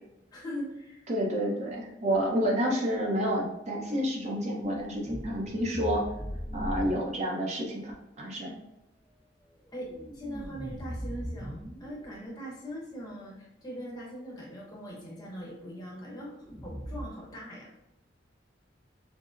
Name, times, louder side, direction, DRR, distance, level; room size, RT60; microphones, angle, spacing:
voice 1, 0.3-1.1 6.5-6.7 8.5-8.6 9.7-16.3 16.6-17.7, equal, 20° left, -3 dB, 0.9 m, -41 dB
voice 2, 1.1-6.1 6.5-7.9 8.2-8.5, equal, 35° right, -3 dB, 0.8 m, -29 dB
sound 1, 2.1-2.5 4.6-7.1 9.7-12.2 16.4-17.0, equal, 5° left, 0.4 m, -39 dB
6.0 x 2.0 x 2.5 m, 0.90 s
head